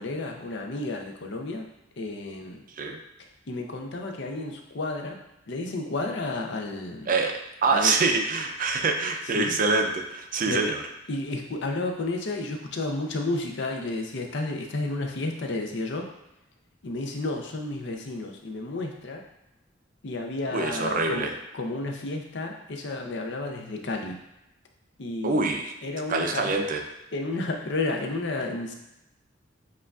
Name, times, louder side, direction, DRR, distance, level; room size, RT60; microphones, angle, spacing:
voice 1, 0.0-1.6 2.0-2.6 3.5-5.2 5.5-7.1 7.7-7.9 9.3-9.6 10.5-10.6 11.1-16.0 16.8-19.2 20.0-24.2 25.0-25.5 25.8-26.6 27.1-28.7, left 2 dB, 60° left, 2 dB, 0.6 m, -31 dB
voice 2, 7.1-10.8 20.5-21.3 25.2-25.7 26.1-26.8, right 3 dB, 45° right, 4 dB, 0.4 m, -25 dB
7.4 x 2.5 x 2.3 m, 0.89 s
head